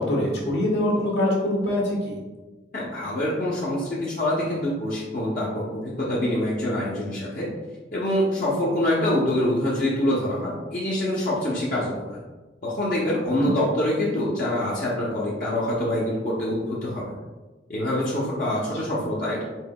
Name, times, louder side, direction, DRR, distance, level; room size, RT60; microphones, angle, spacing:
voice 1, 0.0-2.2 13.4-13.5, left 1 dB, 80° left, -3 dB, 1.2 m, -24 dB
voice 2, 2.7-7.5 7.9-12.2 12.6-17.1 17.7-19.4, left 1 dB, 50° left, -6 dB, 0.7 m, -25 dB
4.5 x 3.8 x 2.2 m, 1.2 s
head